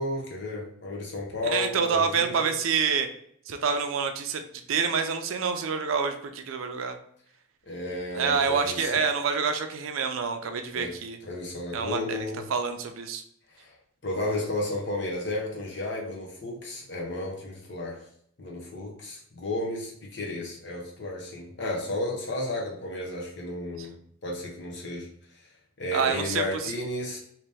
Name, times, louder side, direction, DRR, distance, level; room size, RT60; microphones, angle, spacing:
voice 1, 0.0-2.5 7.7-9.0 10.7-10.9 11.2-12.4 13.6-13.7 14.0-18.0 18.4-24.0 24.2-25.1 25.8-27.2, left 1 dB, 60° left, -2 dB, 0.9 m, -33 dB
voice 2, 1.4-3.1 3.5-4.4 4.7-7.0 8.1-11.2 11.7-12.2 12.5-13.2 25.9-26.7, right 5 dB, 90° right, 7 dB, 0.5 m, -27 dB
2.9 x 2.9 x 3.4 m, 0.66 s
head